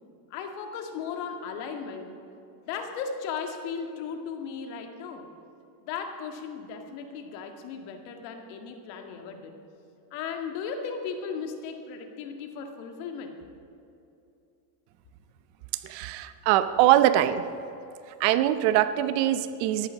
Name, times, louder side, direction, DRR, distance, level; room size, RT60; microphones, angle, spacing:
voice 1, 0.3-2.2 2.7-5.2 5.8-9.5 10.1-13.4, left 6 dB, 65° left, 4 dB, 2.0 m, -36 dB
voice 2, 15.8-17.4 18.2-19.9, right 13 dB, 60° right, 12 dB, 0.9 m, -22 dB
14.0 x 11.0 x 6.1 m, 2.8 s
supercardioid pair, 135°, 50 cm